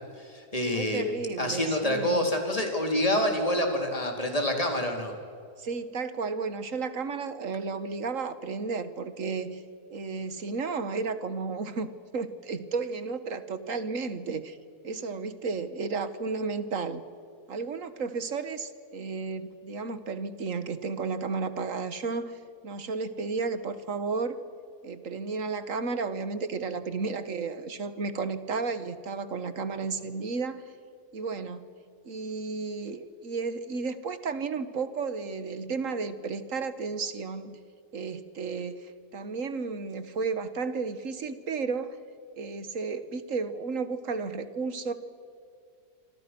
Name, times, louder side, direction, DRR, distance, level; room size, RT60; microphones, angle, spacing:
voice 1, 0.2-1.0 1.4-5.1, left 1 dB, 20° left, 2 dB, 3.9 m, -27 dB
voice 2, 0.7-2.3 5.6-9.6 9.9-14.6 14.8-17.0 17.5-24.4 24.8-30.6 31.1-31.7 32.0-37.6 37.9-42.0 42.4-44.9, right 4 dB, 55° right, 11 dB, 1.8 m, -33 dB
27.0 x 25.5 x 6.2 m, 2.3 s
omnidirectional pair, 1.7 m